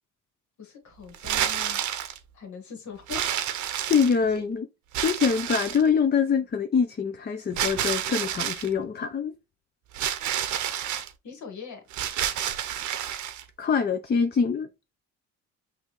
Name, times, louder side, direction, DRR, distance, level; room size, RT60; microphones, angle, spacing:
voice 1, 0.6-1.9 2.3-3.3 4.4-4.5 11.2-11.8, left 6 dB, 70° left, 1.7 m, -41 dB
sound 1, 1.1-2.2 3.1-4.4 4.9-5.9 7.6-8.7 9.9-11.1 11.9-13.4, right 11 dB, 75° right, 0.7 m, -29 dB
voice 2, 3.9-4.7 5.0-9.3 13.6-14.7, left 6 dB, 35° left, 0.5 m, -24 dB
5.9 x 2.7 x 3.0 m
cardioid pair, 90°, 30 cm